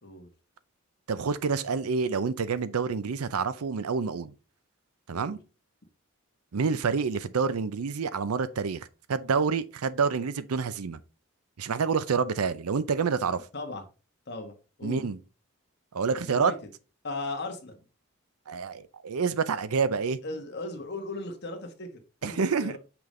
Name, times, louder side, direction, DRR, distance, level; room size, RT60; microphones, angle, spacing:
voice 1, 1.1-4.3 5.1-5.4 6.5-11.0 11.6-13.5 14.8-15.2 15.9-16.5 18.5-20.2 22.2-22.8, right 5 dB, 90° right, 0.5 m, -28 dB
voice 2, 13.2-13.8 14.3-14.5 14.8-15.0 16.2-16.6 17.0-17.8 20.2-22.8, left 2 dB, 50° left, 1.3 m, -37 dB
5.9 x 5.2 x 3.2 m
head